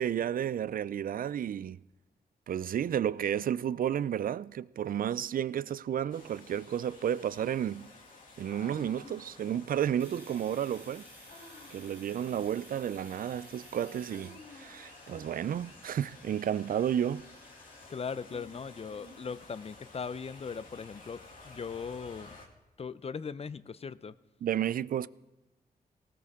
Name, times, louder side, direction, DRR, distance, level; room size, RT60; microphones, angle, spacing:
voice 1, 0.0-1.8 2.5-7.9 8.4-11.1 11.7-17.2 24.4-25.1, right 9 dB, 60° right, 0.4 m, -32 dB
Human voice, 5.1-5.9 8.4-9.8 11.3-12.1 14.1-15.9 18.1-19.7, left 2 dB, 85° left, 3.5 m, -54 dB
sound 1, 6.1-22.5, left 3 dB, 55° left, 3.0 m, -54 dB
Domestic sounds home sounds, 10.0-17.8, right 1 dB, 15° right, 3.4 m, -56 dB
voice 2, 17.9-22.4 22.8-24.1, left 5 dB, 40° left, 0.6 m, -39 dB
19.0 x 18.0 x 3.7 m
cardioid pair, 65°, 16 cm